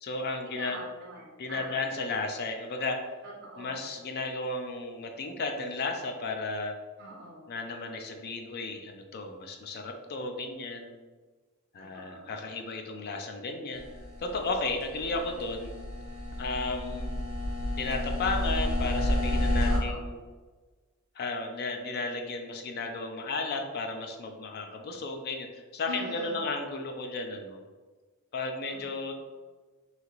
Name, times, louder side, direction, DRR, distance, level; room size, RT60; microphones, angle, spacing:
voice 1, 0.0-0.8 1.4-3.1 3.6-6.8 7.5-11.0 11.7-13.8 14.2-15.8 16.4-17.2 17.8-20.2 21.2-27.6 28.3-29.1, left 3 dB, 50° left, 4 dB, 0.4 m, -34 dB
voice 2, 0.6-1.8 3.2-3.8 7.0-7.5 11.8-12.3 19.6-20.1 25.9-26.4 28.6-29.1, right 1 dB, 50° right, -3 dB, 0.8 m, -43 dB
sound 1, 13.8-19.8, left 1 dB, 75° right, 1.0 m, -30 dB
2.8 x 2.4 x 2.9 m, 1.4 s
head